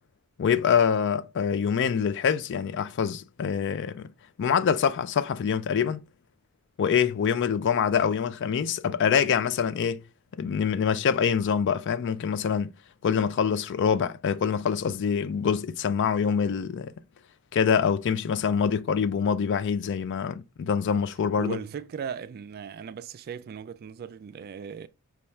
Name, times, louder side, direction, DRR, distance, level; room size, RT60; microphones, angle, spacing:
voice 1, 0.4-4.1 4.4-6.0 6.8-10.0 10.4-12.7 13.0-16.9 17.5-21.6, left 7 dB, 55° left, 0.3 m, -25 dB
voice 2, 21.4-24.9, right 7 dB, 45° right, 0.3 m, -37 dB
5.5 x 2.3 x 3.1 m
head